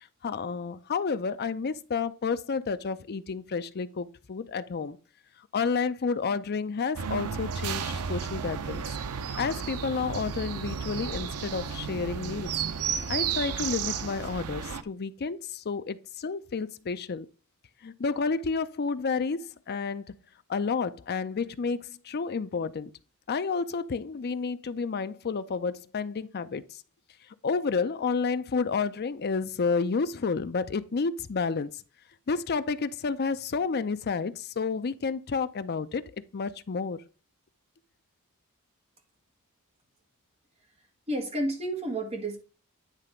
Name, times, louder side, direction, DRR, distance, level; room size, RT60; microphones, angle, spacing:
voice 1, 0.0-5.0 5.5-8.8 9.4-12.6 13.1-17.3 17.8-20.0 20.5-22.9 23.3-26.6 27.4-31.7 32.3-36.0 36.3-37.0, left 5 dB, 45° left, 0.5 m, -30 dB
sound 1, 7.0-14.8, right 7 dB, 85° right, 0.6 m, -33 dB
voice 2, 41.1-42.4, right 1 dB, 30° right, 1.9 m, -30 dB
9.8 x 3.3 x 5.1 m
head